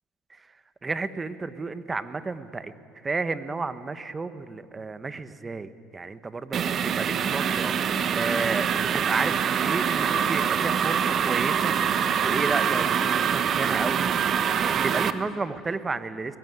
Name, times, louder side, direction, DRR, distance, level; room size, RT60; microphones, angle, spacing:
voice 1, 0.8-2.7 3.0-11.7 12.2-14.1 14.6-16.4, right 3 dB, 20° right, 12 dB, 1.2 m, -32 dB
sound 1, 6.5-15.1, right 7 dB, 45° right, 1.2 m, -24 dB
22.5 x 19.5 x 9.6 m, 2.4 s
supercardioid pair, 105°, 0 cm